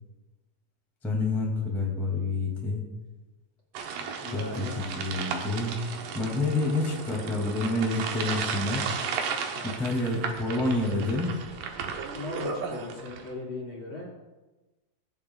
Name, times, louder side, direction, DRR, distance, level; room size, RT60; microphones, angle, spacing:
voice 1, 1.0-2.8 4.3-5.8 6.1-8.8 9.6-11.3, left 2 dB, ahead, -3 dB, 1.6 m, -28 dB
sound 1, 3.7-13.3, right 6 dB, 85° right, 2.7 m, -35 dB
voice 2, 4.2-4.8 9.5-9.9 12.1-14.1, left 3 dB, 40° left, -4 dB, 2.7 m, -37 dB
22.5 x 7.8 x 2.4 m, 1.1 s
omnidirectional pair, 3.7 m